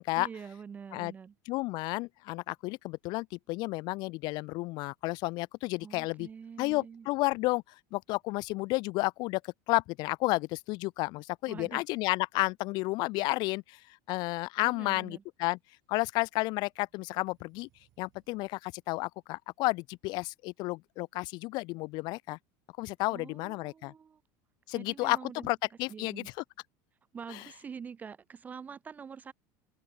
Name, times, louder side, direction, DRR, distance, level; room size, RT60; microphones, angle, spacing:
voice 1, 0.2-1.3 5.8-7.1 11.5-11.8 14.6-15.2 23.1-24.2 24.7-25.5 25.9-26.3 27.1-29.3, right 6 dB, 15° right, 0.4 m, -45 dB
voice 2, 1.5-6.3 6.6-7.6 7.9-13.8 14.1-15.6 15.9-17.7 18.0-22.4 22.8-23.9 24.7-26.2, left 22 dB, 50° left, 0.5 m, -32 dB
sound 1, 15.6-18.6, right 15 dB, 40° right, 5.5 m, -73 dB
open air
cardioid pair, 160°, 10 cm